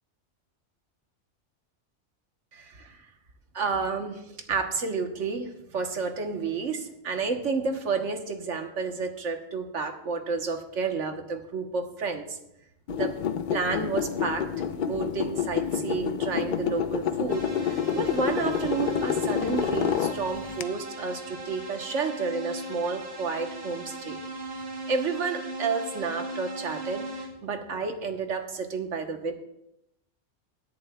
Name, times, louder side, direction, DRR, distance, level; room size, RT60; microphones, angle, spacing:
voice 1, 2.5-3.0 3.5-12.4 13.0-13.1 13.5-24.2 24.9-29.3, right 4 dB, 80° right, 5 dB, 1.5 m, -31 dB
sound 1, 12.9-20.6, left 8 dB, 60° left, 0.5 m, -28 dB
sound 2, 17.3-27.3, right 2 dB, 55° right, 2.4 m, -38 dB
17.0 x 11.0 x 2.3 m, 0.81 s
omnidirectional pair, 1.3 m